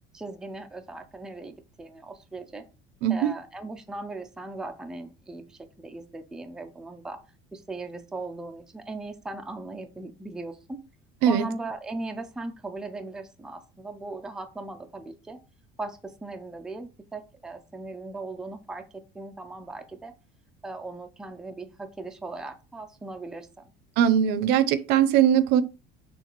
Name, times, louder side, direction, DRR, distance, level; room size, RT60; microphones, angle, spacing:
voice 1, 0.1-2.6 3.1-7.2 7.5-10.8 11.3-15.4 15.8-20.1 20.6-23.6, right 2 dB, 5° right, 0.4 m, -38 dB
voice 2, 3.0-3.3 11.2-11.5 24.0-25.6, right 9 dB, 70° right, 0.5 m, -20 dB
6.4 x 2.4 x 3.0 m
cardioid pair, 155°, 18 cm